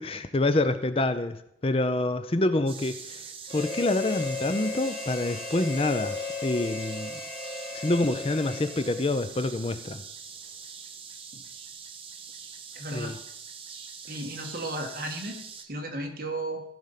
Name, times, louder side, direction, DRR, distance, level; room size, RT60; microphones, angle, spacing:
voice 1, 0.0-3.3 3.5-7.1 7.7-10.0 12.9-13.2, left 2 dB, 30° left, 11 dB, 0.5 m, -27 dB
sound 1, 2.7-15.6, right 6 dB, 30° right, 0.8 m, -44 dB
Harmonica, 3.5-9.3, left 4 dB, 90° left, 2.6 m, -35 dB
voice 2, 12.7-13.1 14.1-16.6, right 1 dB, 50° right, 3 dB, 1.7 m, -35 dB
15.5 x 5.2 x 5.8 m, 0.75 s
head